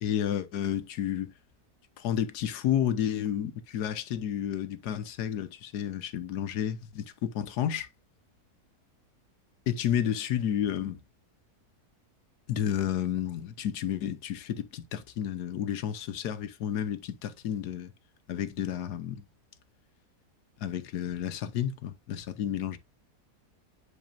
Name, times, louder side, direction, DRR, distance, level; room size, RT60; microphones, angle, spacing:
voice 1, 0.0-1.3 2.0-7.9 9.7-11.0 12.5-17.9 18.3-19.2 20.6-22.8, left 10 dB, 85° left, 1.4 m, -31 dB
10.5 x 4.2 x 2.5 m
omnidirectional pair, 1.7 m